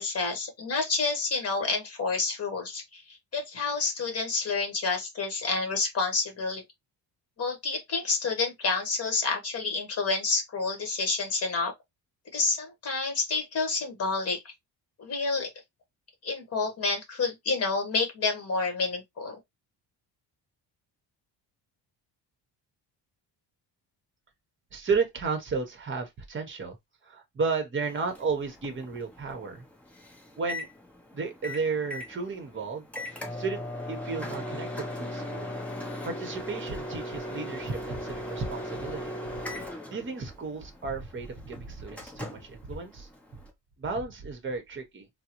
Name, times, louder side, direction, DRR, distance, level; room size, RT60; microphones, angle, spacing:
voice 1, 0.0-6.6 7.4-11.7 12.3-14.5 15.0-15.5 16.2-19.4, left 4 dB, 35° left, 1.2 m, -29 dB
voice 2, 24.7-26.8 27.0-29.6 30.4-30.7 31.1-32.8 33.3-35.5 36.0-39.1 39.9-43.1 43.8-45.1, right 4 dB, 30° right, 0.8 m, -33 dB
Microwave oven, 27.8-43.5, left 1 dB, 5° left, 0.6 m, -38 dB
3.6 x 2.0 x 2.9 m
cardioid pair, 155°, 43 cm